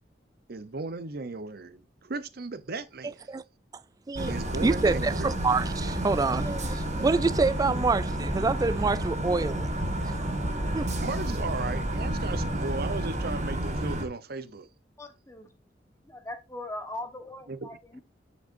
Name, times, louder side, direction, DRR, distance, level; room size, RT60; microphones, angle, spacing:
voice 1, 0.5-3.3 4.3-5.3 7.0-7.3 7.7-7.9 11.0-14.7 17.5-17.7, right 3 dB, 55° right, 0.7 m, -36 dB
sound 1, 4.2-14.1, right 1 dB, 40° right, 1.4 m, -30 dB
voice 2, 4.6-9.7 10.7-10.9, right 3 dB, 20° right, 0.3 m, -26 dB
voice 3, 15.0-15.5 16.1-18.0, left 1 dB, 15° left, 1.2 m, -40 dB
7.6 x 6.5 x 2.6 m
head